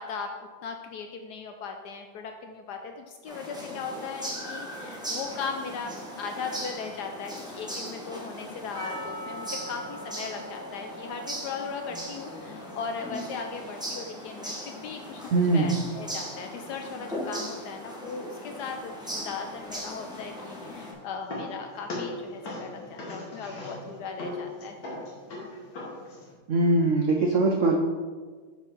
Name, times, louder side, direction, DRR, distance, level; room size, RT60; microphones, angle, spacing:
voice 1, 0.0-15.2 15.5-24.8, left 5 dB, 75° left, 5 dB, 1.0 m, -38 dB
sound 1, 3.3-20.9, equal, 5° right, 0.8 m, -39 dB
Percussion, 8.7-13.7, right 1 dB, 45° right, 1.5 m, -43 dB
voice 2, 15.3-15.8 26.5-27.8, right 2 dB, 90° right, 1 dB, 0.6 m, -22 dB
sound 2, 20.5-26.3, left 2 dB, 55° left, 1.8 m, -39 dB
6.1 x 4.4 x 5.3 m, 1.5 s
omnidirectional pair, 2.1 m